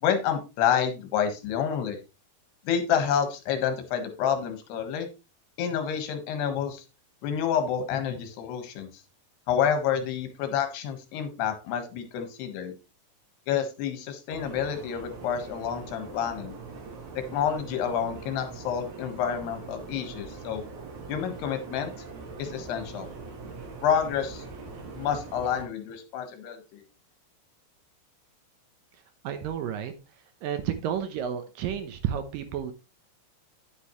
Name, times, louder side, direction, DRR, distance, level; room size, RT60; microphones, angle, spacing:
voice 1, 0.0-2.0 2.7-5.1 5.6-6.8 7.2-8.9 9.5-12.7 13.5-16.6 17.2-20.7 21.1-21.9 22.4-23.1 23.8-24.4 24.9-26.8, left 8 dB, 90° left, 3.5 m, -28 dB
sound 1, 14.3-25.7, right 4 dB, 50° right, 3.2 m, -42 dB
voice 2, 29.2-29.9 30.4-32.7, right 9 dB, 70° right, 2.4 m, -31 dB
10.0 x 8.4 x 3.1 m
omnidirectional pair, 4.6 m